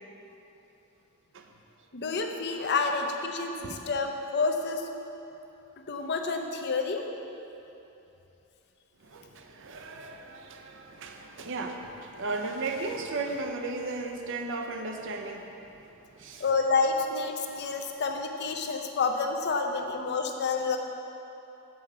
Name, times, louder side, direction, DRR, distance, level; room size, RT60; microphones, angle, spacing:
voice 1, 1.9-4.9 5.9-7.0 16.4-20.8, left 4 dB, 50° left, 4 dB, 0.6 m, -29 dB
voice 2, 9.0-16.5, right 3 dB, 60° right, 4 dB, 0.7 m, -36 dB
7.0 x 4.8 x 6.7 m, 3.0 s
head